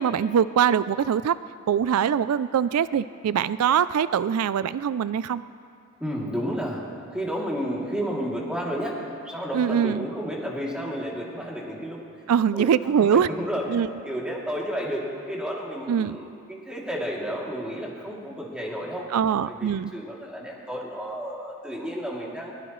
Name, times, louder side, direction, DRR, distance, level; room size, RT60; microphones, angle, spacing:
voice 1, 0.0-1.4 1.7-5.4 9.5-10.1 12.3-13.3 13.7-13.9 15.9-16.2 19.1-19.9, right 8 dB, 85° right, 16 dB, 0.4 m, -23 dB
voice 2, 6.0-6.8 7.1-12.1 12.5-13.6 14.0-16.2 16.5-19.1 19.5-22.5, equal, 5° right, -4 dB, 2.7 m, -31 dB
22.0 x 19.5 x 3.1 m, 2.4 s
head